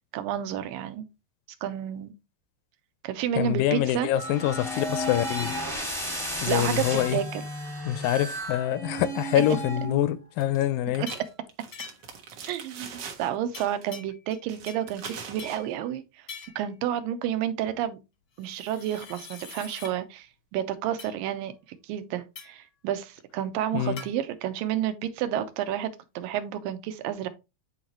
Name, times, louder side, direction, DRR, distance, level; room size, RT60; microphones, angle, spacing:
voice 1, 0.1-1.0 1.6-2.1 3.0-4.1 6.5-7.4 11.0-11.1 12.5-12.9 13.2-16.0 16.6-18.0 18.4-20.3 20.5-27.3, right 10 dB, 85° right, 2.4 m, -30 dB
voice 2, 3.4-5.6 6.4-7.2 7.9-11.1 23.7-24.0, left 12 dB, 85° left, 2.2 m, -25 dB
sound 1, 4.1-10.1, equal, 5° left, 0.4 m, -33 dB
sound 2, 10.4-10.7 10.9-13.3 13.6-13.9 14.5-15.6, right 6 dB, 65° right, 1.5 m, -41 dB
sound 3, 11.1-11.3 11.7-12.2 13.5-14.4 14.7-15.7 16.3-16.7 18.4-19.9 21.0-21.2 22.3-22.7 24.0-24.1, left 5 dB, 60° left, 1.1 m, -44 dB
9.2 x 4.0 x 3.0 m
omnidirectional pair, 3.9 m